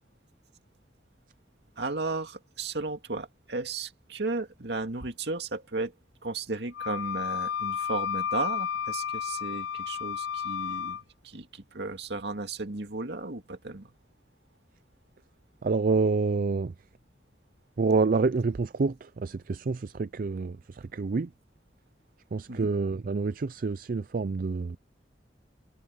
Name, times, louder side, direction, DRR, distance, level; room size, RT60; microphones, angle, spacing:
voice 1, 1.8-5.9 6.2-13.9 22.5-22.7, right 3 dB, 65° right, 2.4 m, -34 dB
Wind instrument woodwind instrument, 6.7-11.0, left 8 dB, 90° left, 0.4 m, -32 dB
voice 2, 15.6-16.7 17.8-21.3 22.3-24.8, right 4 dB, 50° right, 0.4 m, -27 dB
head